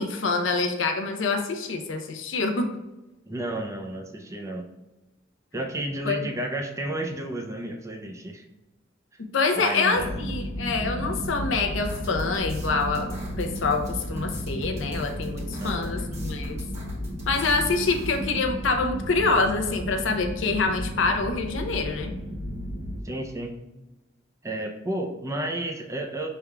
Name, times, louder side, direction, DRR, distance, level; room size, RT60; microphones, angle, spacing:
voice 1, 0.0-2.7 6.0-6.2 9.3-13.1 13.4-16.6 17.3-22.1, left 3 dB, 85° left, 5 dB, 0.6 m, -26 dB
voice 2, 3.3-4.7 5.5-8.4 9.5-10.1 15.6-15.9 23.0-23.6 24.4-26.3, right 1 dB, 15° right, 3 dB, 0.4 m, -32 dB
sound 1, 10.0-23.0, equal, 45° left, 0.8 m, -33 dB
sound 2, 11.8-18.2, right 2 dB, 35° right, 1.5 m, -47 dB
5.8 x 3.5 x 2.2 m, 1.0 s
head